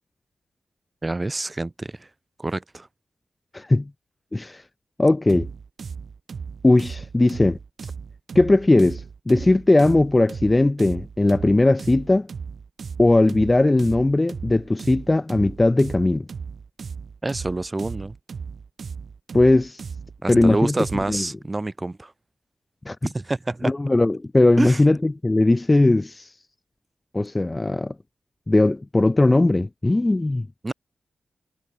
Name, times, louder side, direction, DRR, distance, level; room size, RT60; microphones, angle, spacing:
voice 1, 1.0-2.1 2.4-2.9 17.2-18.2 20.2-22.1 23.0-23.7 24.6-24.8 30.6-30.7, right 2 dB, 20° right, 1.0 m, -27 dB
voice 2, 3.5-3.9 4.3-4.6 5.0-5.5 6.6-7.6 8.4-12.3 13.0-16.3 19.3-19.8 20.3-20.7 21.1-21.2 22.9-23.0 23.6-26.3 27.1-27.9 28.5-30.5, left 2 dB, 20° left, 0.3 m, -19 dB
sound 1, 5.3-21.2, right 5 dB, 60° right, 1.1 m, -36 dB
wide cardioid pair, 150°, 0 cm